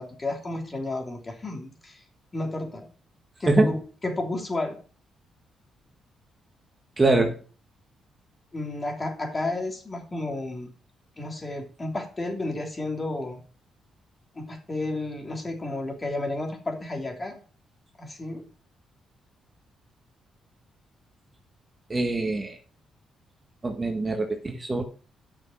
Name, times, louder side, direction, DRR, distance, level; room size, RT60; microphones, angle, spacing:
voice 1, 0.0-2.0 2.3-2.9 3.4-4.8 8.5-10.7 11.2-13.4 14.3-17.4 18.0-18.5, left 2 dB, 25° left, 2 dB, 3.0 m, -32 dB
voice 2, 7.0-7.4 21.9-22.6 23.6-24.8, right 2 dB, 25° right, 4 dB, 1.7 m, -23 dB
8.8 x 6.4 x 5.7 m, 0.39 s
cardioid pair, 85°, 0 cm